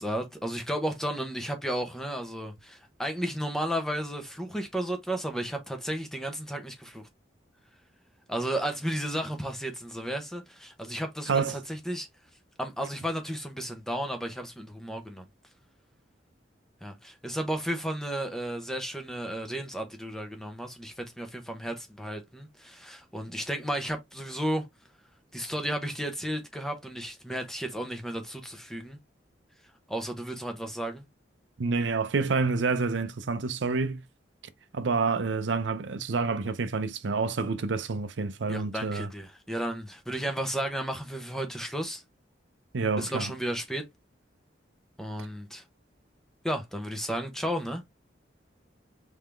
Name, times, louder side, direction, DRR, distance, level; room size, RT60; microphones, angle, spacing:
voice 1, 0.0-7.0 8.3-12.1 12.6-15.2 16.8-24.7 25.3-29.0 29.9-31.0 38.5-42.0 43.0-43.8 45.0-45.6 46.4-47.8, right 1 dB, ahead, 0.8 m, -33 dB
voice 2, 11.3-11.6 31.6-34.0 34.7-39.1 42.7-43.3, right 4 dB, 75° right, 0.6 m, -28 dB
3.7 x 3.5 x 3.2 m
head